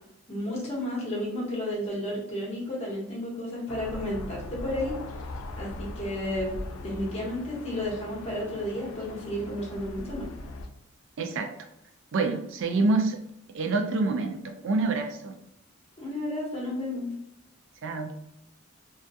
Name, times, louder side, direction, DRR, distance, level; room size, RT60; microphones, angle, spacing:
voice 1, 0.3-4.9 5.6-6.5 6.8-10.2 16.0-17.1, left 1 dB, 30° left, -4 dB, 0.9 m, -32 dB
sound 1, 3.7-10.7, left 2 dB, 85° left, 0.3 m, -40 dB
voice 2, 11.2-11.5 12.1-13.2 13.5-15.4 17.8-18.1, right 3 dB, 65° right, 5 dB, 0.4 m, -27 dB
2.3 x 2.2 x 2.6 m, 0.77 s
head